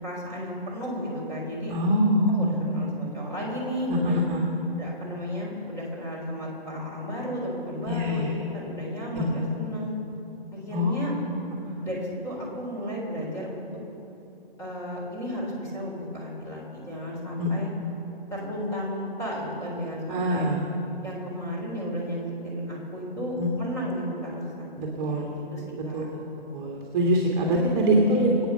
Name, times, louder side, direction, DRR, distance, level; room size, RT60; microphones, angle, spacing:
voice 1, 0.0-1.7 2.3-4.2 4.8-9.9 10.5-11.1 11.8-13.7 14.6-17.7 18.3-20.5 21.0-24.5 25.0-26.1 27.5-28.1, equal, 10° left, -4 dB, 3.8 m, -33 dB
voice 2, 1.7-2.6 4.0-4.4 7.9-8.3 9.2-9.3 10.7-11.1 11.6-11.7 17.4-17.5 20.1-20.6 23.4-23.5 24.8-25.3 25.9-26.1 26.5-28.5, equal, 25° right, -1 dB, 1.9 m, -24 dB
24.5 x 9.0 x 5.7 m, 2.8 s
hypercardioid pair, 145°, 30 cm